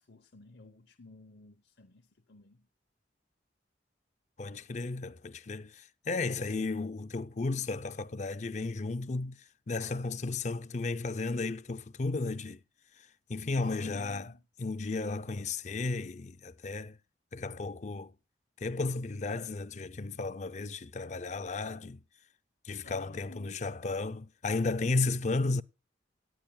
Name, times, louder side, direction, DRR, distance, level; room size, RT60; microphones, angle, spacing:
voice 1, 0.0-2.7 13.6-14.4 22.8-23.6, left 2 dB, 70° left, 0.9 m, -53 dB
voice 2, 4.4-9.4 9.7-12.6 13.0-14.3 14.6-17.0 17.3-18.1 18.6-22.0 22.6-25.6, left 3 dB, 40° left, 0.5 m, -34 dB
18.0 x 10.5 x 2.3 m
head